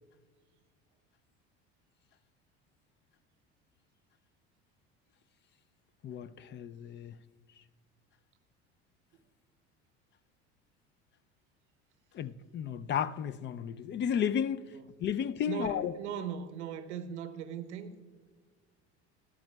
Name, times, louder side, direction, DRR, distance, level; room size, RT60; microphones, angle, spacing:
voice 1, 6.0-7.1 12.1-14.7 15.0-15.9, left 8 dB, 35° left, 0.4 m, -33 dB
voice 2, 15.5-18.0, right 8 dB, 85° right, 0.8 m, -38 dB
13.5 x 12.0 x 2.3 m
hypercardioid pair, 75°, 34 cm